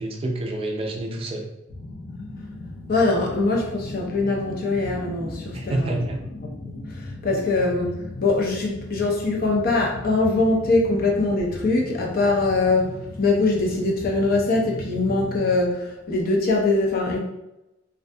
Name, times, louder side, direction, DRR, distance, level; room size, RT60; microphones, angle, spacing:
voice 1, 0.0-1.5 5.5-6.2, right 1 dB, 30° right, 1 dB, 0.3 m, -28 dB
sound 1, 1.7-15.6, left 1 dB, 90° left, 0.7 m, -37 dB
voice 2, 2.9-6.0 6.7-6.8 7.2-7.9 8.2-17.2, left 3 dB, 50° left, -1 dB, 0.5 m, -22 dB
2.5 x 2.2 x 2.6 m, 0.93 s
head